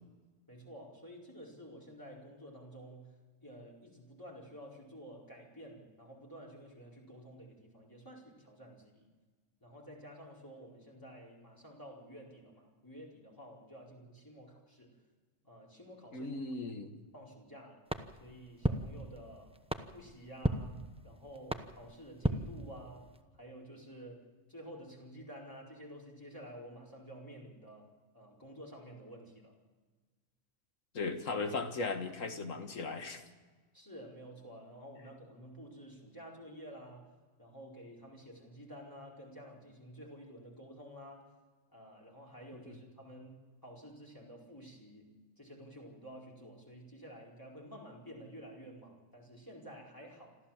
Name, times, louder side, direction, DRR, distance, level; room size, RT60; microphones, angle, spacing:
voice 1, 0.5-3.1 3.4-9.1 9.6-15.0 15.4-16.4 17.1-17.9 18.2-19.5 19.9-23.1 23.3-29.6 33.7-37.1 37.4-41.3 41.7-50.4, equal, 15° left, -3 dB, 4.7 m, -51 dB
voice 2, 16.1-16.9 30.9-33.2 42.7-42.8, left 3 dB, 90° left, 6 dB, 2.1 m, -37 dB
sound 1, 17.9-23.2, right 1 dB, 5° right, 0.8 m, -38 dB
27.0 x 14.0 x 7.4 m, 1.4 s
omnidirectional pair, 1.3 m